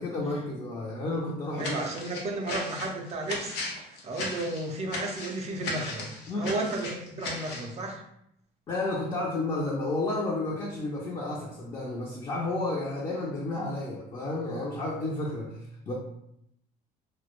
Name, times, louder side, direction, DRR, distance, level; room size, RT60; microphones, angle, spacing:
voice 1, 0.0-1.8 6.3-6.5 8.7-15.9, left 2 dB, 30° left, -4 dB, 0.4 m, -31 dB
sound 1, 1.6-7.7, left 2 dB, 90° left, 0.6 m, -37 dB
voice 2, 1.6-6.1 6.3-8.0, right 2 dB, 40° right, 2 dB, 0.4 m, -33 dB
2.1 x 2.1 x 2.9 m, 0.77 s
cardioid pair, 110°, 17 cm